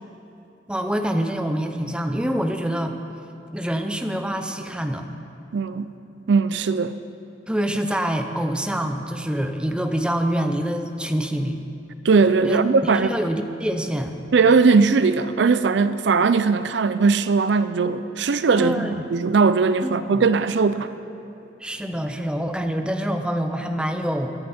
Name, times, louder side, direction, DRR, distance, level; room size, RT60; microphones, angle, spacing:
voice 1, 0.7-3.0 3.5-5.1 7.5-11.6 12.4-14.2 18.6-19.0 19.8-20.2 21.6-24.3, equal, 5° right, 5 dB, 0.7 m, -26 dB
voice 2, 5.5-5.9 6.3-7.0 12.0-13.1 14.3-20.9, right 4 dB, 65° right, 13 dB, 0.4 m, -19 dB
22.0 x 11.0 x 4.3 m, 2.8 s
head